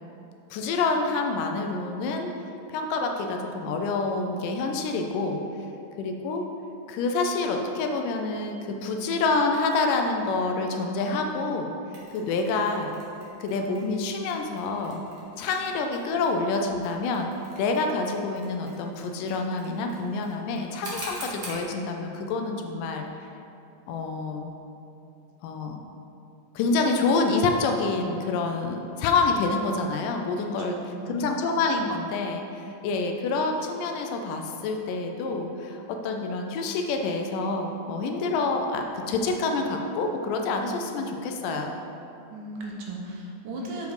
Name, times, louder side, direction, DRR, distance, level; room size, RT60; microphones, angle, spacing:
voice 1, 0.5-2.3 2.7-5.4 6.0-6.5 6.9-11.7 12.1-13.0 13.4-15.0 15.4-17.3 17.6-23.1 23.9-24.5 25.4-25.8 26.6-30.8 31.1-41.7, left 3 dB, 80° left, 3 dB, 2.2 m, -27 dB
Mechanisms, 11.9-21.7, right 1 dB, 45° right, 1.1 m, -46 dB
voice 2, 30.4-31.2 42.3-43.9, right 2 dB, 75° right, -1 dB, 2.4 m, -38 dB
7.9 x 5.1 x 5.0 m, 2.7 s
omnidirectional pair, 3.8 m